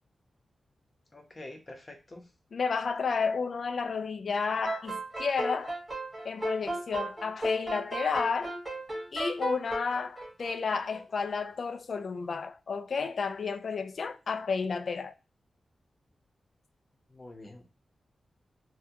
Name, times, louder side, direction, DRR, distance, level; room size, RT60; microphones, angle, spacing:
voice 1, 1.1-2.2 17.1-17.6, left 2 dB, 25° left, 0.7 m, -46 dB
voice 2, 2.5-5.8 6.2-8.6 9.1-15.1, left 5 dB, 55° left, 0.3 m, -31 dB
sound 1, 4.6-11.3, right 2 dB, 15° right, 1.4 m, -35 dB
3.5 x 2.2 x 2.7 m
wide cardioid pair, 150°, 0 cm